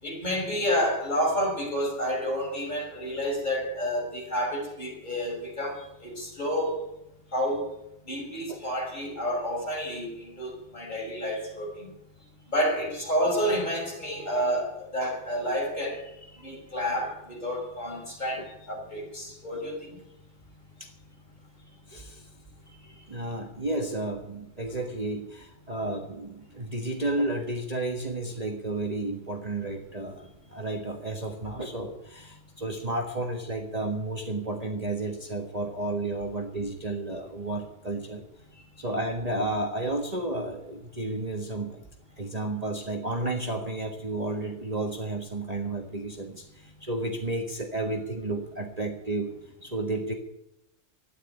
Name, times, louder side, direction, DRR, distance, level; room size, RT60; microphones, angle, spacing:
voice 1, 0.0-6.8 7.3-7.6 8.1-11.9 12.5-16.0 16.4-19.9, equal, 35° left, -2 dB, 6.3 m, -29 dB
voice 2, 21.9-22.3 23.1-38.2 38.8-41.8 42.2-49.3 49.6-50.1, right 2 dB, 30° right, 2 dB, 1.5 m, -32 dB
12.5 x 10.0 x 9.7 m, 0.83 s
omnidirectional pair, 1.4 m